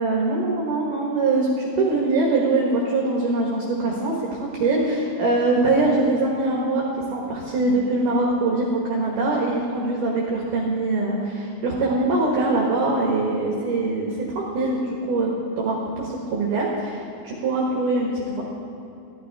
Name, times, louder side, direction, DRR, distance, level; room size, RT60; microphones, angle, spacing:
voice 1, 0.0-15.3 15.6-18.4, right 2 dB, 65° right, -3 dB, 2.2 m, -23 dB
15.0 x 11.0 x 4.6 m, 2.7 s
omnidirectional pair, 5.4 m